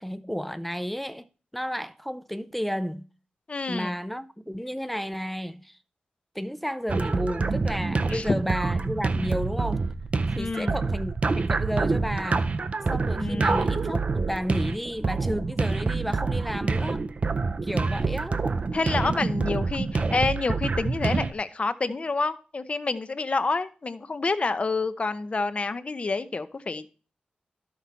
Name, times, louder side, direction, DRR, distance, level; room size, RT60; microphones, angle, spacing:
voice 1, 0.0-1.3 1.5-3.1 3.7-5.8 6.3-9.9 10.3-12.5 12.9-17.1 17.6-18.4, equal, 5° left, 0.5 m, -32 dB
voice 2, 3.5-4.0 8.1-8.3 10.4-10.8 13.2-13.8 18.7-26.9, left 3 dB, 40° left, 0.7 m, -28 dB
sound 1, 6.9-21.3, right 4 dB, 45° right, 0.6 m, -27 dB
12.0 x 5.9 x 4.1 m
wide cardioid pair, 85°, 3 cm